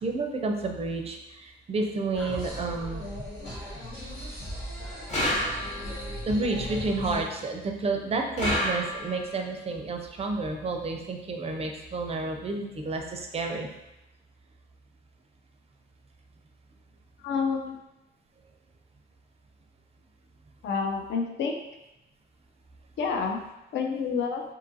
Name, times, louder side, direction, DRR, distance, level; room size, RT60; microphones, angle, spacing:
voice 1, 0.0-3.0 6.2-13.7, right 3 dB, 30° right, 3 dB, 0.4 m, -30 dB
sound 1, 2.1-7.2, left 1 dB, 90° left, 1.0 m, -37 dB
sound 2, 5.1-6.0 8.4-9.3, left 1 dB, 35° left, 0.9 m, -29 dB
voice 2, 17.2-17.7 20.6-21.5 23.0-23.4 23.7-24.4, left 5 dB, 65° left, 3 dB, 0.4 m, -28 dB
2.7 x 2.4 x 2.6 m, 0.93 s
cardioid pair, 90°, 20 cm